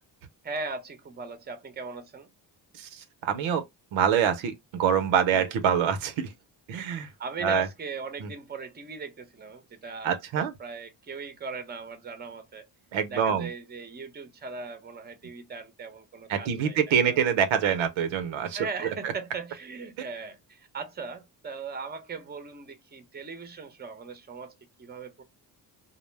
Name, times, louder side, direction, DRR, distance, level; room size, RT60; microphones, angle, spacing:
voice 1, 0.4-2.3 5.3-5.6 6.9-12.7 13.1-17.2 18.5-25.2, right 4 dB, 20° right, 0.7 m, -39 dB
voice 2, 2.7-3.6 3.9-6.3 6.7-7.1 7.4-7.7 8.2-8.3 10.0-10.5 12.9-13.5 16.3-19.1, right 8 dB, 80° right, 0.7 m, -25 dB
2.1 x 2.1 x 3.2 m
cardioid pair, 70°, 46 cm